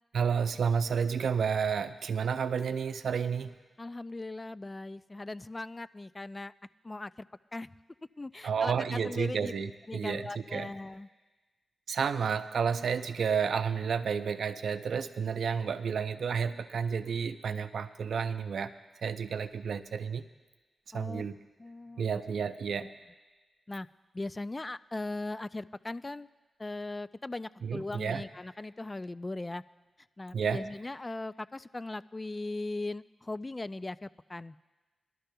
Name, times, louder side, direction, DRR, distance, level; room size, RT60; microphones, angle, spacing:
voice 1, 0.1-3.5 8.4-10.7 11.9-18.7 19.0-20.2 20.9-21.3 22.0-22.9 27.6-28.3 30.3-30.7, right 6 dB, 80° right, 10 dB, 0.5 m, -31 dB
voice 2, 3.8-6.5 6.8-7.1 7.5-7.7 8.2-9.5 9.9-11.1 20.9-21.2 21.6-22.0 23.7-23.9 24.1-26.3 26.6-29.6 30.2-34.6, left 2 dB, 25° left, 16 dB, 0.3 m, -39 dB
20.5 x 12.5 x 2.2 m, 1.3 s
cardioid pair, 55°, 0 cm